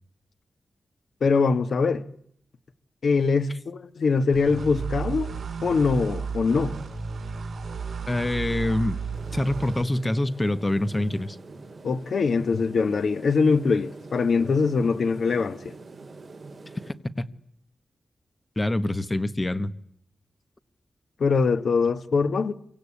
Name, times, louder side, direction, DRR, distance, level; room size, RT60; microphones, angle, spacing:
voice 1, 1.2-2.0 3.0-5.3 5.6-6.7 11.8-15.7 21.2-22.5, left 4 dB, 55° left, 1.4 m, -23 dB
sound 1, 4.3-9.8, right 5 dB, 60° right, 6.1 m, -33 dB
voice 2, 8.1-9.0 9.3-11.4 17.2-17.3 18.6-19.7, left 1 dB, 15° left, 1.3 m, -25 dB
sound 2, 9.1-16.9, right 3 dB, 35° right, 4.1 m, -45 dB
28.0 x 24.0 x 8.6 m
wide cardioid pair, 175°, 0 cm